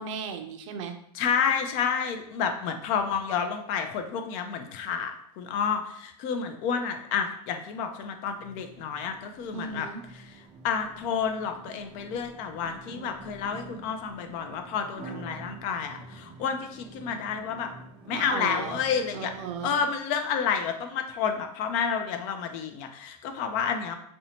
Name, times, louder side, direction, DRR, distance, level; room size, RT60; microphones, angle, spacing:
voice 1, 0.0-1.0 9.5-10.0 18.1-18.8 19.1-19.8, right 6 dB, 85° right, 6 dB, 0.4 m, -36 dB
voice 2, 1.1-9.9 10.1-17.7 18.0-19.3 19.6-24.0, left 7 dB, 55° left, 7 dB, 0.4 m, -30 dB
sound 1, 8.2-19.9, right 3 dB, 40° right, 0.6 m, -47 dB
2.6 x 2.1 x 2.8 m, 0.70 s
supercardioid pair, 120°, 16 cm